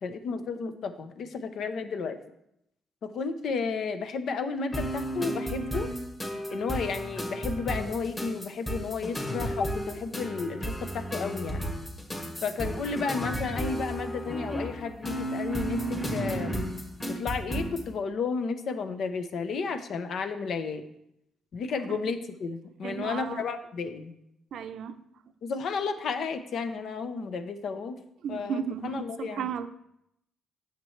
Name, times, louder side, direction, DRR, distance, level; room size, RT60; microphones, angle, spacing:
voice 1, 0.0-2.2 3.0-5.9 6.5-11.7 12.4-16.6 17.1-20.8 21.5-24.1 25.4-28.0 28.3-29.5, left 5 dB, 65° left, 9 dB, 0.8 m, -32 dB
sound 1, 4.7-17.9, equal, 20° left, 2.1 m, -33 dB
voice 2, 22.8-23.5 24.5-25.0 28.2-29.7, right 7 dB, 70° right, 10 dB, 0.5 m, -34 dB
9.2 x 6.7 x 3.2 m, 0.80 s
cardioid pair, 90°, 0 cm